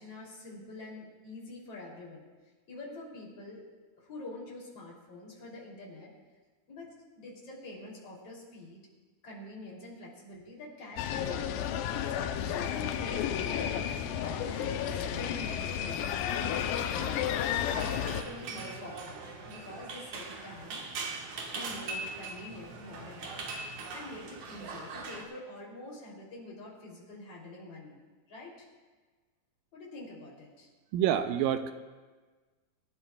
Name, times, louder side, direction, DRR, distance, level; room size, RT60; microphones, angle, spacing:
voice 1, 0.0-2.2 2.7-3.6 4.0-6.1 6.7-8.8 9.2-11.9 12.4-16.1 16.4-20.8 21.5-28.0 28.3-28.7 29.7-30.7, left 2 dB, 40° left, -3 dB, 3.9 m, -46 dB
sound 1, 11.0-18.2, left 9 dB, 75° left, 2.2 m, -32 dB
sound 2, 17.7-25.2, right 3 dB, 60° right, 2.5 m, -41 dB
voice 2, 30.9-31.7, right 10 dB, 80° right, 9 dB, 2.2 m, -27 dB
25.5 x 12.0 x 2.3 m, 1.3 s
omnidirectional pair, 4.3 m